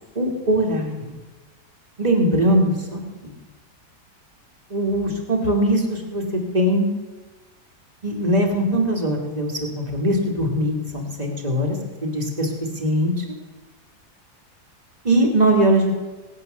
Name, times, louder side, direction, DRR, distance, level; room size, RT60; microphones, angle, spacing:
voice 1, 0.2-1.2 2.0-3.0 4.7-6.9 8.0-11.8 12.0-12.5 12.8-13.2 15.0-15.9, right 1 dB, 25° right, 0 dB, 2.6 m, -21 dB
24.5 x 8.3 x 6.8 m, 1.2 s
omnidirectional pair, 1.8 m